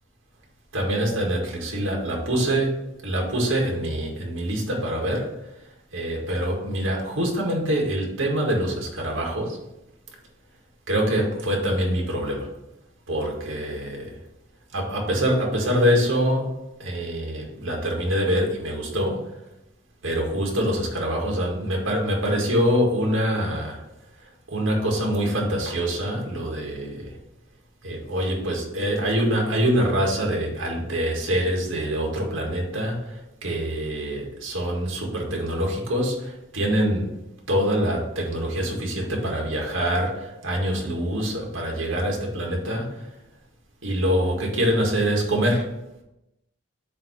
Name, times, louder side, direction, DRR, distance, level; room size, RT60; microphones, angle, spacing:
voice 1, 0.7-2.7 3.0-5.3 5.9-9.6 10.9-12.5 13.1-14.1 14.7-19.2 20.0-23.8 24.5-27.1 27.8-37.2 37.5-43.1 43.8-45.7, equal, 75° right, -1 dB, 1.8 m, -25 dB
7.5 x 2.9 x 5.8 m, 0.91 s
head